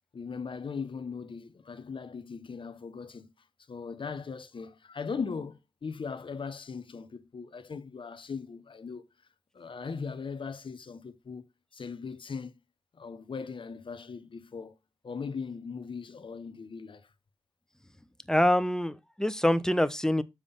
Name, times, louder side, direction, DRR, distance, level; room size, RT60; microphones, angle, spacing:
voice 1, 0.1-3.3 3.7-9.0 9.5-11.5 11.7-12.6 12.9-14.7 15.0-17.1, left 5 dB, 55° left, 1.0 m, -39 dB
voice 2, 18.3-20.2, left 1 dB, 5° left, 0.8 m, -25 dB
7.2 x 3.3 x 5.5 m
supercardioid pair, 40°, 10 cm